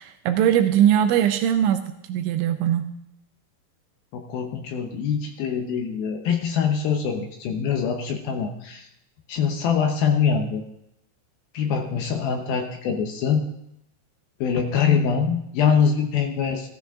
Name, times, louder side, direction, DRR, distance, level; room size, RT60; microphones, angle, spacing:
voice 1, 0.0-2.9, right 10 dB, 85° right, 8 dB, 3.0 m, -21 dB
voice 2, 4.1-8.9 9.3-10.6 11.5-13.5 14.4-16.7, left 6 dB, 75° left, 4 dB, 2.3 m, -24 dB
15.0 x 13.5 x 3.7 m, 0.77 s
omnidirectional pair, 5.3 m